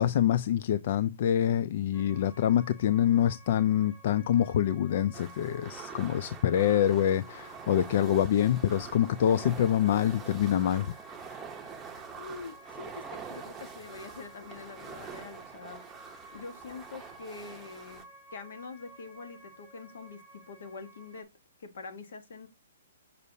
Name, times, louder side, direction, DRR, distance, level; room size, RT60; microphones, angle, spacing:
voice 1, 0.0-10.9, left 10 dB, 50° left, 0.3 m, -26 dB
sound 1, 1.9-21.2, right 2 dB, 25° left, 2.4 m, -54 dB
sound 2, 5.1-18.0, right 6 dB, 10° right, 0.8 m, -45 dB
voice 2, 12.2-15.8 16.3-18.0 18.3-21.3 21.6-22.5, left 4 dB, 70° left, 1.4 m, -44 dB
6.6 x 5.3 x 2.7 m
hypercardioid pair, 160°, 0 cm